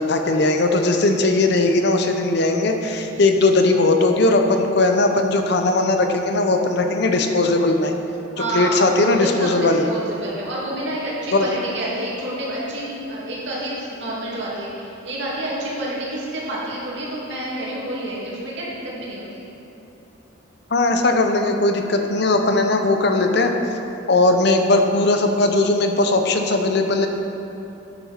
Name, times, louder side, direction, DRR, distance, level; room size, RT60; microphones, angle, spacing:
voice 1, 0.0-7.9 8.5-9.8 11.3-11.5 20.7-23.5 24.1-27.1, left 2 dB, 55° left, 5 dB, 0.8 m, -18 dB
voice 2, 8.3-19.5 27.0-27.1, right 1 dB, 60° right, -6 dB, 2.6 m, -29 dB
9.7 x 7.3 x 5.7 m, 2.9 s
head